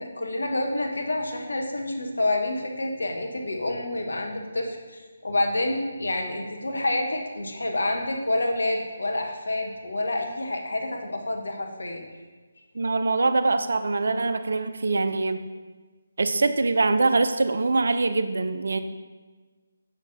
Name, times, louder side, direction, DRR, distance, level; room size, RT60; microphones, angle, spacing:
voice 1, 0.0-12.0, left 2 dB, 70° left, 2 dB, 1.1 m, -28 dB
voice 2, 12.7-15.4 16.2-18.8, right 3 dB, 60° right, 10 dB, 0.5 m, -23 dB
6.5 x 6.0 x 3.9 m, 1.4 s
figure-of-eight pair, 150°, 0 cm